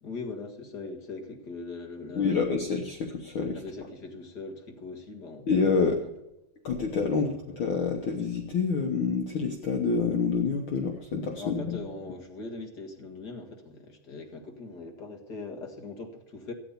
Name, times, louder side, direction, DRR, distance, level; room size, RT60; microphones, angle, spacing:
voice 1, 0.0-2.7 3.5-5.5 6.0-6.1 7.1-7.4 11.4-16.5, left 3 dB, 40° left, 3 dB, 1.8 m, -41 dB
voice 2, 2.1-3.6 5.5-6.0 6.6-11.8, left 5 dB, 75° left, 3 dB, 1.1 m, -27 dB
14.0 x 9.1 x 7.0 m, 0.90 s
omnidirectional pair, 3.8 m